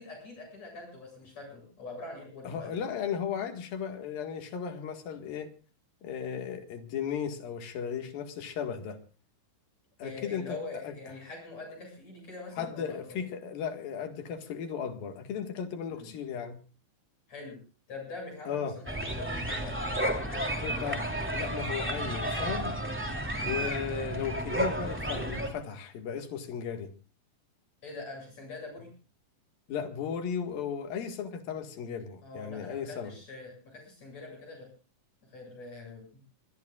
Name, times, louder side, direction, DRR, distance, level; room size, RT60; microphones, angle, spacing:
voice 1, 0.0-2.8 10.0-13.0 15.9-16.1 17.3-17.6 17.9-20.9 23.4-23.6 27.8-28.9 32.2-34.7 35.3-36.2, left 3 dB, 50° left, 0 dB, 9.1 m, -44 dB
voice 2, 2.4-5.5 6.0-9.0 10.0-10.6 10.8-10.9 12.6-16.6 18.5-18.8 20.6-21.0 21.3-22.8 23.4-26.9 29.7-33.1, left 7 dB, 85° left, 6 dB, 3.6 m, -35 dB
sound 1, 18.9-25.5, right 1 dB, 5° right, 2.7 m, -32 dB
24.0 x 21.0 x 2.4 m, 0.35 s
omnidirectional pair, 4.0 m